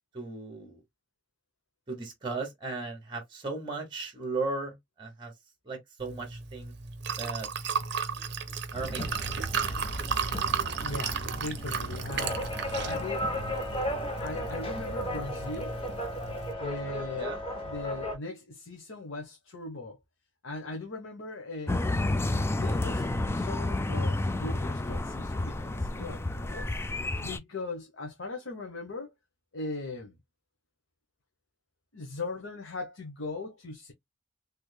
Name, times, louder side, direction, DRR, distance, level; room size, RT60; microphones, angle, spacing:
voice 1, 0.1-0.8 1.9-5.3 5.6-6.7 7.2-7.5 8.7-9.1 17.2-17.4, right 3 dB, 25° right, 1.0 m, -36 dB
Liquid, 6.0-16.5, right 6 dB, 60° right, 0.6 m, -35 dB
sound 1, 8.7-18.2, equal, 30° left, 1.1 m, -35 dB
voice 2, 10.8-12.4 12.8-13.3 13.7-13.8 14.2-15.8 16.6-17.3 17.7-20.0 20.4-21.8 22.5-26.7 27.2-29.1 29.5-30.2 31.9-33.9, left 3 dB, 85° left, 0.9 m, -39 dB
sound 2, 21.7-27.4, left 2 dB, 15° left, 0.3 m, -30 dB
3.4 x 3.2 x 2.2 m
head